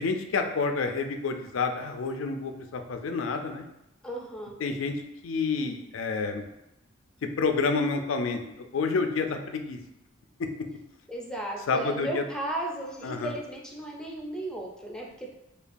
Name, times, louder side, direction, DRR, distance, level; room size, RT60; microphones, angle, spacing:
voice 1, 0.0-3.7 4.6-4.9 5.2-6.4 7.4-9.8 11.7-12.2 13.0-13.4, left 4 dB, 75° left, 6 dB, 0.4 m, -29 dB
voice 2, 4.0-4.6 11.1-15.3, right 1 dB, 5° left, -1 dB, 0.5 m, -35 dB
5.1 x 2.3 x 2.6 m, 0.87 s
head